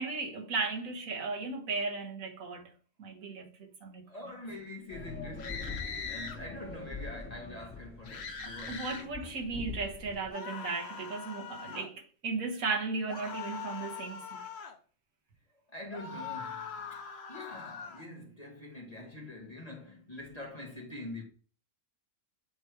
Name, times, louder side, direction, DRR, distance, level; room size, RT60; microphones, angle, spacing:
voice 1, 0.0-2.7 3.0-4.1 8.7-14.5, right 4 dB, 85° right, 1.7 m, -36 dB
voice 2, 4.1-9.7 15.7-17.0 17.3-21.2, left 1 dB, 30° left, 1.3 m, -45 dB
sound 1, 4.9-10.3, left 4 dB, 5° left, 1.7 m, -44 dB
sound 2, 5.4-6.4 8.1-9.1 10.3-11.9 13.1-14.8 15.9-18.0, left 6 dB, 55° left, 1.1 m, -41 dB
8.0 x 3.2 x 4.5 m
omnidirectional pair, 1.4 m